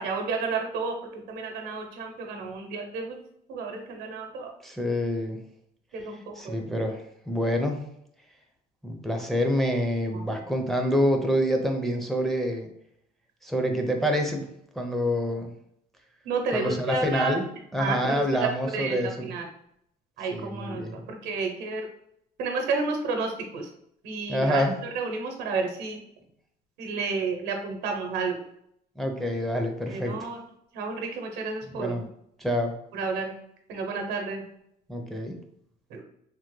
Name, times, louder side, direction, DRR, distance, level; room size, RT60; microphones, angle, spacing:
voice 1, 0.0-3.2 3.5-4.5 5.9-6.7 10.1-10.3 16.2-17.4 17.8-19.5 20.2-21.9 22.4-23.7 24.0-24.6 24.9-26.0 26.8-28.4 29.9-30.4 30.7-32.0 32.9-33.3 33.7-34.4 35.9-36.0, right 4 dB, 85° right, 4 dB, 0.8 m, -31 dB
voice 2, 4.6-5.4 6.4-7.8 8.8-12.7 13.4-14.5 14.8-15.5 16.5-17.4 17.7-19.3 20.3-21.1 24.3-24.8 29.0-30.3 31.7-32.0 32.4-32.7 34.9-35.4, equal, ahead, 3 dB, 0.5 m, -27 dB
3.4 x 2.0 x 3.1 m, 0.73 s
cardioid pair, 110°, 17 cm